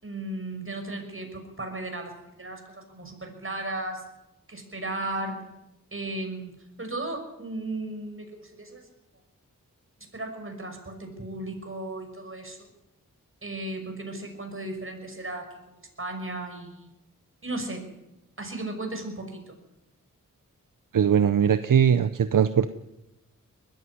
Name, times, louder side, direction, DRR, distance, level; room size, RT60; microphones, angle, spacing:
voice 1, 0.0-4.0 4.5-5.4 5.9-8.9 10.1-12.6 13.4-16.9 17.4-17.8 18.4-19.6, right 2 dB, 40° right, 5 dB, 6.1 m, -35 dB
voice 2, 20.9-22.7, right 8 dB, 75° right, 12 dB, 0.8 m, -20 dB
20.5 x 14.5 x 10.0 m, 0.94 s
cardioid pair, 55°, 33 cm